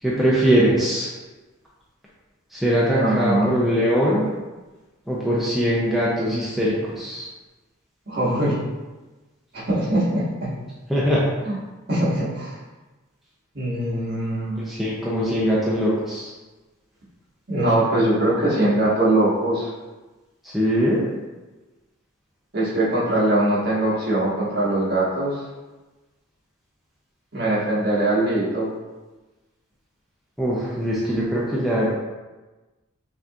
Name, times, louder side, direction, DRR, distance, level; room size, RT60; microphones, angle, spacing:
voice 1, 0.0-1.1 2.5-4.3 5.1-7.3 10.9-11.2 14.6-16.3 20.4-21.0 30.4-32.0, equal, ahead, -8 dB, 0.5 m, -21 dB
voice 2, 3.0-3.5 8.1-8.6 9.5-10.5 11.4-11.5 11.9-12.6 13.5-14.6 17.5-19.7 22.5-25.4 27.3-28.7, right 1 dB, 50° right, -8 dB, 1.4 m, -22 dB
5.8 x 2.8 x 2.4 m, 1.2 s
head